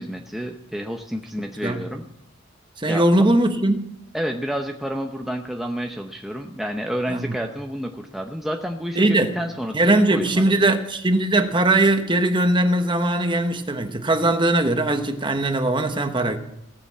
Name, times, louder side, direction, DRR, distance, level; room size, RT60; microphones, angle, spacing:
voice 1, 0.0-2.0 2.9-3.0 4.1-10.7, equal, ahead, 0.7 m, -30 dB
voice 2, 2.8-3.9 7.1-7.3 9.0-9.3 9.7-16.4, right 1 dB, 25° right, 1.1 m, -20 dB
17.5 x 6.9 x 7.3 m
head